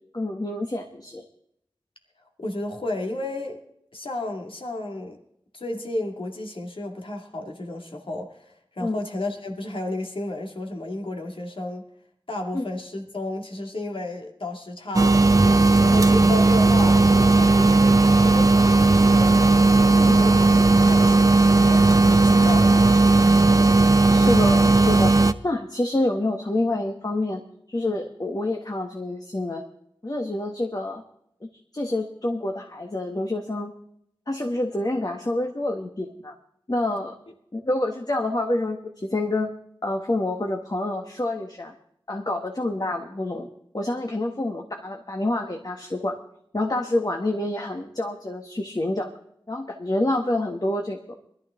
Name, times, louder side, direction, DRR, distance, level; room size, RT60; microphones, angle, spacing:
voice 1, 0.1-1.2 8.8-9.0 12.5-12.6 20.0-20.2 24.1-25.1 25.4-27.4 27.7-29.6 30.0-31.0 31.7-33.7 34.3-36.3 36.7-37.1 37.5-39.5 39.8-41.7 42.1-43.5 43.7-46.2 46.5-49.1 49.5-51.1, left 1 dB, 45° left, 3 dB, 1.6 m, -27 dB
voice 2, 2.4-3.6 3.9-5.2 5.5-11.9 12.3-15.3 15.6-19.4 19.8-23.1, left 1 dB, 75° left, 2 dB, 2.4 m, -32 dB
sound 1, 14.9-25.3, right 3 dB, 40° right, 0.8 m, -16 dB
20.5 x 12.5 x 3.8 m, 0.72 s
wide cardioid pair, 45°, 9 cm